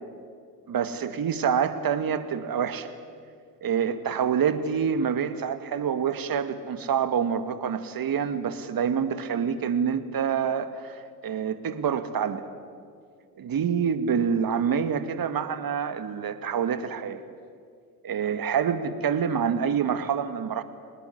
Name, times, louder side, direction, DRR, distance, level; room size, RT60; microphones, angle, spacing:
voice 1, 0.7-2.9 3.6-12.4 13.4-17.2 18.0-20.6, right 7 dB, 45° right, 11 dB, 2.1 m, -27 dB
25.0 x 20.0 x 10.0 m, 2.2 s
hypercardioid pair, 55°, 48 cm